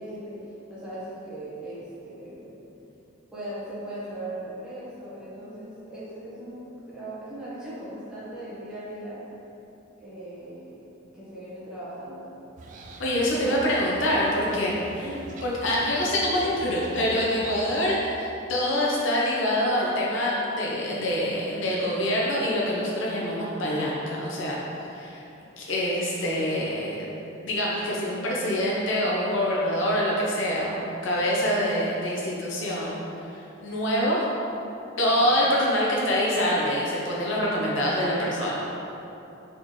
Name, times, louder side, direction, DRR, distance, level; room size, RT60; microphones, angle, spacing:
voice 1, 0.0-2.6 3.3-9.2 10.0-10.9 11.1-12.4 13.3-13.5 14.0-14.1 15.0-15.3 35.3-35.4, right 1 dB, 5° right, -11 dB, 1.2 m, -39 dB
sound 1, 12.6-17.9, right 3 dB, 40° right, 0.3 m, -43 dB
voice 2, 13.0-15.1 15.4-24.6 24.9-25.2 25.6-27.1 27.4-34.3 35.0-38.6, equal, 65° left, -5 dB, 0.7 m, -25 dB
4.2 x 3.7 x 3.1 m, 2.9 s
head